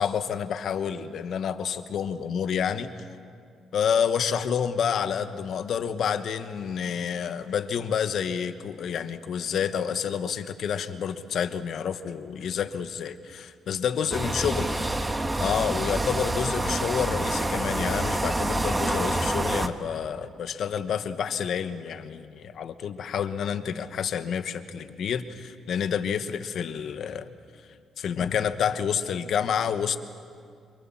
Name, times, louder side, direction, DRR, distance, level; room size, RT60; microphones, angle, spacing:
voice 1, 0.0-2.9 3.7-14.8 15.4-27.3 28.0-30.0, left 7 dB, 65° left, 10 dB, 1.3 m, -29 dB
sound 1, 14.1-19.7, right 1 dB, 20° right, 1.4 m, -27 dB
26.5 x 24.0 x 7.4 m, 2.4 s
cardioid pair, 90°, 0 cm